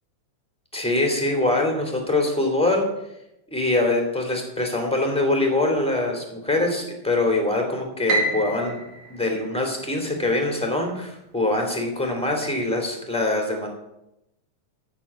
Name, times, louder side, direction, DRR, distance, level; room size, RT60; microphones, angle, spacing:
voice 1, 0.7-2.9 3.5-8.8 9.1-13.7, left 2 dB, ahead, 2 dB, 2.0 m, -23 dB
Piano, 8.1-10.3, right 2 dB, 70° right, 3.4 m, -29 dB
14.0 x 6.1 x 6.9 m, 0.85 s
omnidirectional pair, 3.5 m